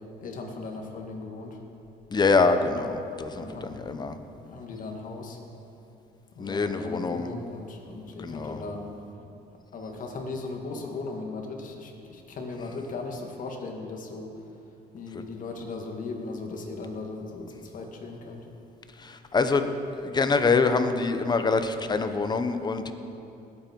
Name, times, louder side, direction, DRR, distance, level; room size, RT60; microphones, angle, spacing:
voice 1, 0.2-1.6 3.3-3.7 4.5-5.4 6.3-8.8 9.7-14.3 14.9-18.4, left 3 dB, 50° left, 2 dB, 2.1 m, -37 dB
voice 2, 2.1-4.2 6.4-7.3 8.2-8.6 19.0-19.7 20.0-22.9, left 4 dB, 25° left, 8 dB, 0.9 m, -25 dB
19.5 x 9.0 x 4.6 m, 2.8 s
cardioid pair, 110°, 17 cm